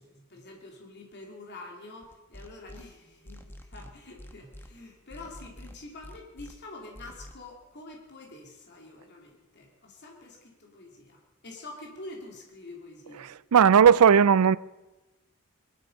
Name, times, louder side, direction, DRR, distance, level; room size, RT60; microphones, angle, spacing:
voice 1, 0.0-13.3, left 2 dB, 50° left, 2.8 m, -46 dB
sound 1, 2.0-2.8 3.3-4.7 5.1-6.5 6.9-7.3, left 1 dB, 10° left, 1.1 m, -46 dB
voice 2, 13.2-14.6, right 7 dB, 80° right, 0.4 m, -17 dB
21.5 x 12.0 x 5.3 m
head